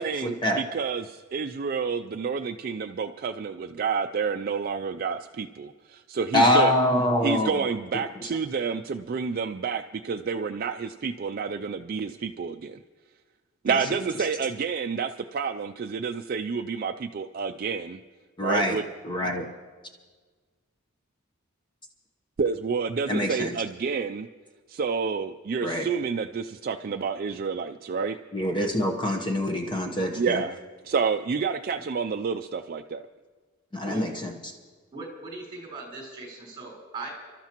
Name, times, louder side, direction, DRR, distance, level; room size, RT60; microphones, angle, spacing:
voice 1, 0.0-6.7 7.2-12.8 13.6-18.0 18.4-18.8 22.4-24.3 24.7-28.2 30.1-30.6 30.8-33.0, right 5 dB, 45° right, 8 dB, 0.4 m, -29 dB
voice 2, 6.3-7.6 18.4-18.8 19.0-19.4 23.1-23.5 25.6-25.9 28.3-30.4 33.7-34.5, left 1 dB, 20° left, 1 dB, 0.9 m, -24 dB
voice 3, 34.9-37.1, right 3 dB, 25° right, -3 dB, 4.1 m, -39 dB
29.5 x 13.0 x 3.0 m, 1.4 s
head